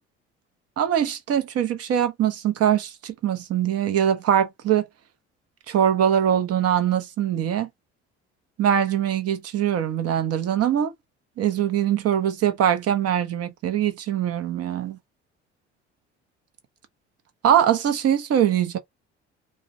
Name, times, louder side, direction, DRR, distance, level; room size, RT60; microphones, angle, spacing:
voice 1, 0.8-4.9 5.7-7.7 8.6-10.9 11.4-15.0 17.4-18.8, right 9 dB, 45° right, 0.7 m, -22 dB
2.3 x 2.1 x 2.5 m
hypercardioid pair, 60°, 33 cm